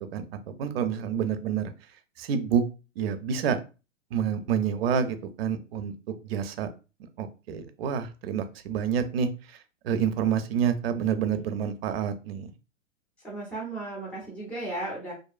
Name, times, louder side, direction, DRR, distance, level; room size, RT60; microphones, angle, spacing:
voice 1, 0.6-1.7 2.2-2.6 3.0-3.6 4.1-5.9 6.2-6.7 7.2-9.6 9.8-12.5, right 7 dB, 50° right, 9 dB, 0.5 m, -28 dB
voice 2, 13.2-15.1, right 2 dB, 5° left, -2 dB, 0.4 m, -35 dB
2.6 x 2.3 x 2.3 m, 0.32 s
hypercardioid pair, 135°, 39 cm